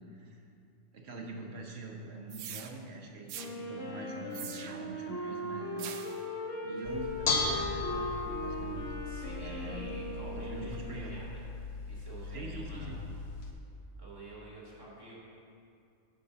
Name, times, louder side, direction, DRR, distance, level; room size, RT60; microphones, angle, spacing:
voice 1, 0.1-0.4 0.9-6.1 6.6-8.8 9.4-11.1 12.3-13.0, right 2 dB, 60° right, 0 dB, 1.1 m, -44 dB
sound 1, 2.3-2.7 3.3-3.5 4.3-4.9 5.8-6.2, right 9 dB, 90° right, 0.9 m, -43 dB
Wind instrument woodwind instrument, 3.3-11.0, left 1 dB, 80° left, 1.6 m, -39 dB
Bell / Dishes pots and pans, 6.8-13.5, left 4 dB, 60° left, 1.0 m, -37 dB
voice 2, 9.0-11.4 11.9-13.0 14.0-15.2, right 2 dB, 20° right, -7 dB, 2.3 m, -49 dB
9.7 x 3.8 x 6.7 m, 2.5 s
omnidirectional pair, 1.3 m